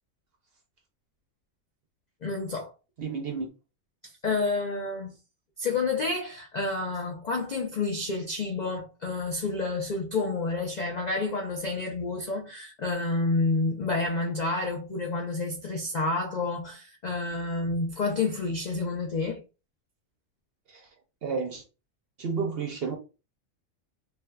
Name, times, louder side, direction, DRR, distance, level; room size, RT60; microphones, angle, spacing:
voice 1, 2.2-2.7 4.0-5.2 5.6-19.4, left 3 dB, 60° left, 0.4 m, -29 dB
voice 2, 3.0-3.5 20.7-20.9 21.2-21.6 22.2-23.0, right 5 dB, 60° right, 0.7 m, -31 dB
3.5 x 2.6 x 2.2 m
omnidirectional pair, 1.4 m